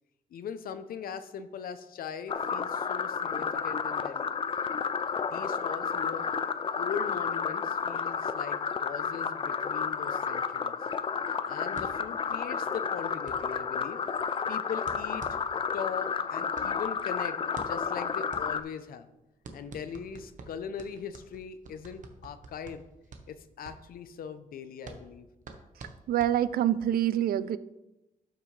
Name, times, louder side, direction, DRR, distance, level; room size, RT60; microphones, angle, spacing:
voice 1, 0.3-4.3 5.3-6.3 6.7-10.8 11.5-14.0 14.5-15.4 15.7-17.4 17.7-19.1 19.5-22.8 23.3-25.3, left 7 dB, 80° left, 11 dB, 0.7 m, -40 dB
sound 1, 2.3-18.6, left 6 dB, 35° left, 0.4 m, -31 dB
sound 2, 11.8-26.8, right 4 dB, 60° right, 1.0 m, -49 dB
voice 2, 26.1-27.6, right 11 dB, 85° right, 16 dB, 0.4 m, -26 dB
12.0 x 6.0 x 3.3 m, 0.95 s
wide cardioid pair, 125°, 15 cm